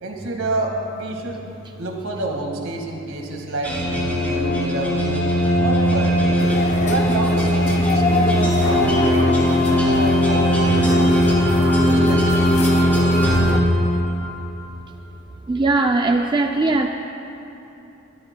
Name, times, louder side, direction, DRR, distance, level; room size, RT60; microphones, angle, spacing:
voice 1, 0.0-1.4 1.8-5.3 5.6-6.4 6.9-9.0 9.7-11.5 11.8-12.7, right 2 dB, 80° right, 1 dB, 1.8 m, -28 dB
sound 1, 3.6-14.3, equal, 10° left, 2.7 m, -18 dB
sound 2, 6.4-13.6, left 4 dB, 35° left, 0.5 m, -28 dB
voice 2, 15.5-16.9, right 3 dB, 20° right, 3 dB, 0.3 m, -19 dB
22.0 x 12.5 x 2.2 m, 2.9 s
head